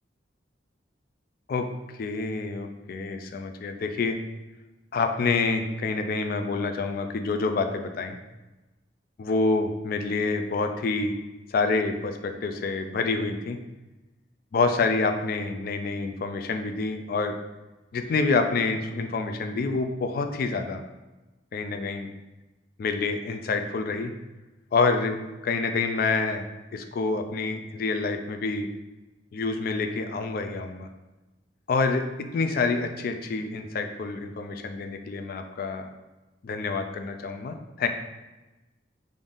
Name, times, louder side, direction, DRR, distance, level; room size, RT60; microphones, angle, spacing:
voice 1, 2.0-4.2 4.9-8.2 9.2-11.1 11.5-13.6 14.5-17.3 17.9-20.8 21.5-22.1 22.8-24.1 24.7-25.2 25.4-26.5 26.7-28.7 29.3-30.9 31.7-32.0 32.3-35.9 36.4-37.9, left 3 dB, 55° left, 6 dB, 0.3 m, -27 dB
3.5 x 2.6 x 3.7 m, 1.1 s
head